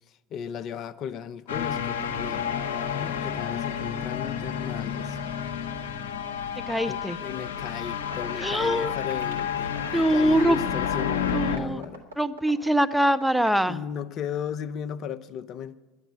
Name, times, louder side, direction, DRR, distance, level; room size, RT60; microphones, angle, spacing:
voice 1, 0.1-2.5 2.9-5.2 6.9-12.1 13.7-15.8, left 8 dB, 45° left, 0.6 m, -36 dB
sound 1, 1.5-11.6, left 8 dB, 75° left, 0.9 m, -30 dB
voice 2, 6.7-7.2 8.4-8.9 9.9-10.6 11.3-11.8 12.2-13.8, right 1 dB, 5° right, 0.6 m, -23 dB
sound 2, 8.0-13.6, right 1 dB, 90° right, 1.6 m, -42 dB
11.5 x 9.0 x 9.0 m
figure-of-eight pair, 70°, 0 cm